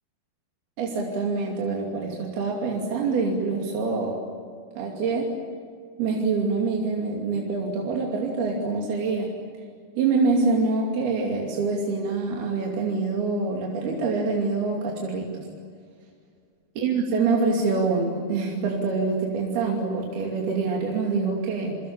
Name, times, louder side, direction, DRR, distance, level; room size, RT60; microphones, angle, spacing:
voice 1, 0.8-4.2 4.8-5.3 6.0-9.3 10.0-15.5 16.8-21.8, right 4 dB, 75° right, -1 dB, 4.6 m, -25 dB
28.0 x 25.0 x 7.3 m, 2.1 s
omnidirectional pair, 4.5 m